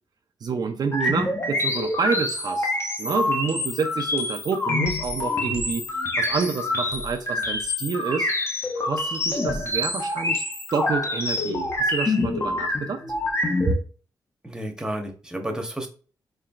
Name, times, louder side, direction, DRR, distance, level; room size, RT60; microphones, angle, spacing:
voice 1, 0.4-2.7 3.0-5.8 6.2-8.3 8.8-10.4 10.7-13.0, right 5 dB, 60° right, 0.5 m, -28 dB
sound 1, 0.9-13.8, left 2 dB, 35° left, 0.9 m, -26 dB
voice 2, 14.4-15.9, right 1 dB, 10° right, 1.0 m, -32 dB
4.4 x 3.0 x 2.4 m
cardioid pair, 70°, 8 cm